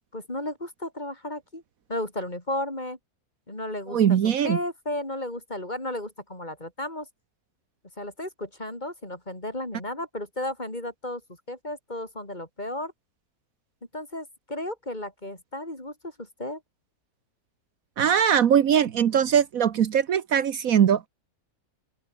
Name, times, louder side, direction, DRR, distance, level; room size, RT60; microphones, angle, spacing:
voice 1, 0.1-1.6 1.9-3.0 3.5-4.2 4.4-7.1 8.0-11.2 11.5-12.9 13.9-16.6, left 1 dB, 30° left, 5.3 m, -34 dB
voice 2, 3.9-4.6 18.0-21.1, right 8 dB, 70° right, 1.4 m, -21 dB
open air
omnidirectional pair, 1.6 m